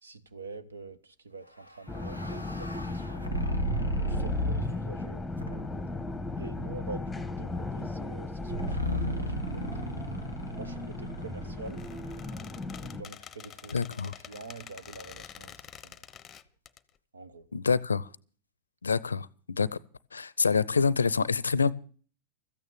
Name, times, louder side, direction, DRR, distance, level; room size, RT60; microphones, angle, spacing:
voice 1, 0.0-3.4 4.0-5.7 6.4-9.8 10.5-11.8 12.8-15.6 15.8-16.0 17.1-17.5, right 3 dB, 70° right, 1.2 m, -46 dB
sound 1, 1.6-4.9 5.4-5.9 8.5-12.6, equal, 90° right, 1.3 m, -34 dB
sound 2, 1.9-13.0, left 3 dB, 5° left, 1.1 m, -36 dB
Squeak, 11.7-16.8, left 9 dB, 25° left, 0.8 m, -48 dB
voice 2, 13.7-14.1 17.5-18.1 18.8-19.8 20.1-21.7, left 5 dB, 75° left, 0.5 m, -26 dB
14.0 x 9.1 x 7.4 m
figure-of-eight pair, 90°, 0 cm